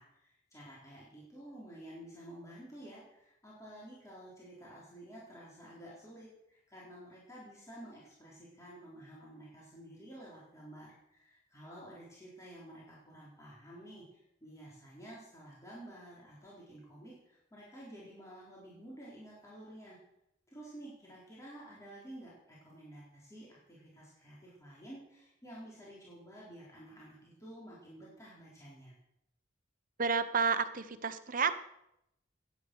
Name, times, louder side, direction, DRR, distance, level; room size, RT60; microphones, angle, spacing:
voice 1, 0.0-20.0 20.5-29.0, right 1 dB, 15° left, -6 dB, 4.5 m, -51 dB
voice 2, 30.0-31.6, right 5 dB, 45° right, 10 dB, 1.1 m, -30 dB
16.5 x 10.5 x 6.4 m, 0.81 s
head